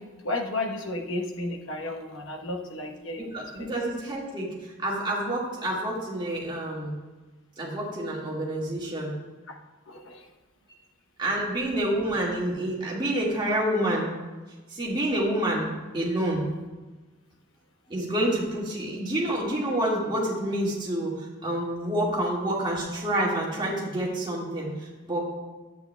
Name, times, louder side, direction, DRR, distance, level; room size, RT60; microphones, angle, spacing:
voice 1, 0.0-3.7 9.5-9.6 9.9-10.3, left 2 dB, 75° left, 3 dB, 1.0 m, -33 dB
voice 2, 3.2-7.0 7.6-9.1 11.2-14.1 14.7-15.7 15.9-16.5 17.9-21.1 21.4-25.2, right 1 dB, 25° right, -4 dB, 1.8 m, -28 dB
10.5 x 8.5 x 2.2 m, 1.2 s
head